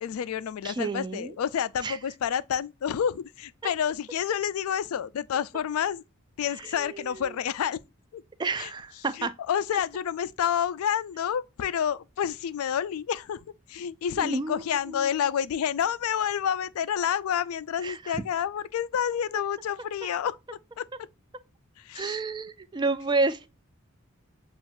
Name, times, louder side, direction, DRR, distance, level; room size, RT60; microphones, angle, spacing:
voice 1, 0.0-6.0 6.4-7.8 8.1-8.2 8.6-8.7 9.2-13.4 13.7-20.4 20.8-20.9 21.8-22.2, left 8 dB, 80° left, 0.3 m, -29 dB
voice 2, 0.6-1.4 1.8-2.0 3.6-3.7 6.6-7.4 8.4-9.3 9.7-9.8 14.1-15.1 17.8-18.2 21.9-23.5, right 3 dB, 20° right, 0.3 m, -30 dB
7.0 x 2.4 x 2.5 m
head